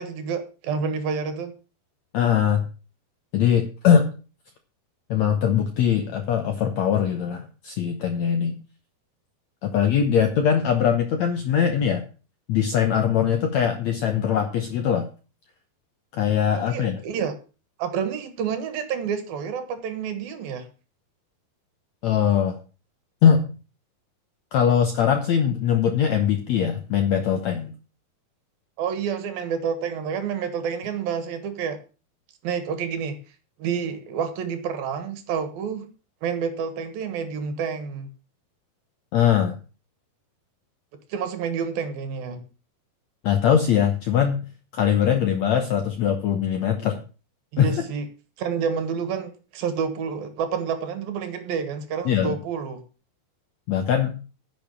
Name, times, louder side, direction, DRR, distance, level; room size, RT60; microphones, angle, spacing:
voice 1, 0.0-1.5 16.5-17.3 17.8-20.7 28.8-31.8 32.4-33.2 33.6-35.9 36.2-38.1 41.1-42.4 47.5-48.1 48.4-52.8, right 6 dB, 70° right, 10 dB, 3.0 m, -29 dB
voice 2, 2.1-2.7 3.3-4.1 5.1-8.6 9.6-12.0 12.5-15.1 16.1-17.0 22.0-22.6 23.2-23.5 24.5-27.7 39.1-39.6 43.2-44.4 44.7-47.0 47.6-47.7 52.1-52.4 53.7-54.2, left 8 dB, 75° left, 6 dB, 1.6 m, -21 dB
10.5 x 7.1 x 7.0 m, 0.35 s
omnidirectional pair, 4.6 m